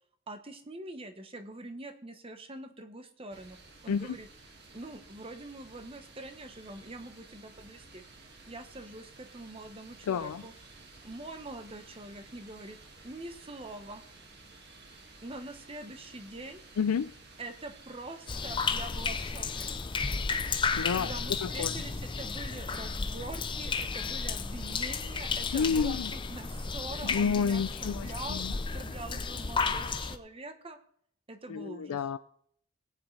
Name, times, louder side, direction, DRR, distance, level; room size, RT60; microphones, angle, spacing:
voice 1, 0.3-3.6 3.8-4.3 4.7-8.0 8.4-10.5 11.0-14.0 15.2-16.6 17.4-19.7 20.9-30.8 31.3-32.0, right 2 dB, 25° right, 8 dB, 0.9 m, -44 dB
sound 1, 3.3-19.8, right 3 dB, 50° right, 1.9 m, -54 dB
voice 2, 10.1-10.4 16.8-17.1 20.8-21.1 21.4-21.7 25.5-26.1 27.0-28.5 31.5-32.2, left 6 dB, 85° left, 12 dB, 0.4 m, -30 dB
sound 2, 18.3-30.2, left 4 dB, 20° left, 0.5 m, -33 dB
18.5 x 8.8 x 3.3 m, 0.65 s
head